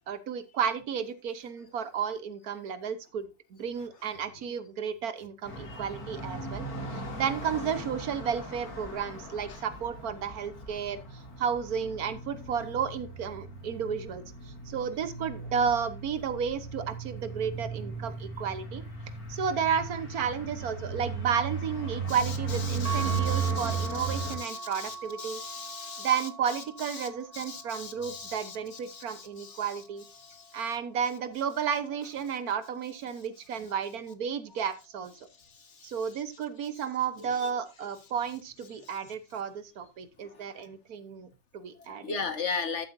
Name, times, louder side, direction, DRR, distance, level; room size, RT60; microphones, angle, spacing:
voice 1, 0.1-6.7 6.9-14.2 14.7-18.8 19.3-25.4 26.0-30.0 30.5-35.3 35.8-42.2, right 7 dB, 70° right, 1.4 m, -32 dB
sound 1, 5.4-24.4, right 4 dB, 65° left, 3.1 m, -36 dB
voice 2, 22.7-26.1 27.0-27.1 27.3-28.6 28.9-29.6 30.2-30.4 35.8-35.9 42.0-42.9, left 5 dB, 45° left, 1.6 m, -38 dB
sound 2, 22.8-31.1, right 4 dB, 35° right, 2.1 m, -42 dB
12.5 x 7.7 x 2.6 m
omnidirectional pair, 1.7 m